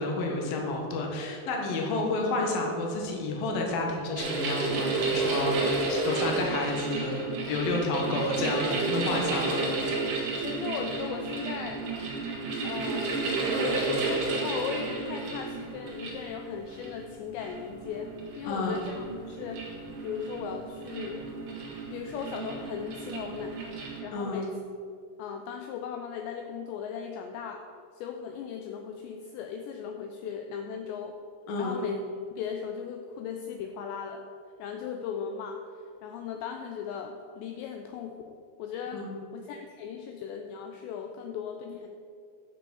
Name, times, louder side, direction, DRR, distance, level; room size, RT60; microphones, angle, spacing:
voice 1, 0.0-9.7 18.4-18.8 24.1-24.5 31.5-31.9 38.9-39.2, left 2 dB, 65° left, 1 dB, 2.6 m, -30 dB
sound 1, 4.2-24.0, right 3 dB, 55° right, 1.9 m, -32 dB
voice 2, 10.4-11.9 12.6-13.2 13.5-18.1 18.4-19.7 20.0-21.3 21.9-23.7 24.0-24.5 25.2-27.6 28.0-31.2 31.6-31.9 32.3-34.2 34.6-35.6 36.0-41.9, left 7 dB, 90° left, 4 dB, 2.5 m, -37 dB
11.0 x 6.0 x 7.0 m, 2.4 s
omnidirectional pair, 5.7 m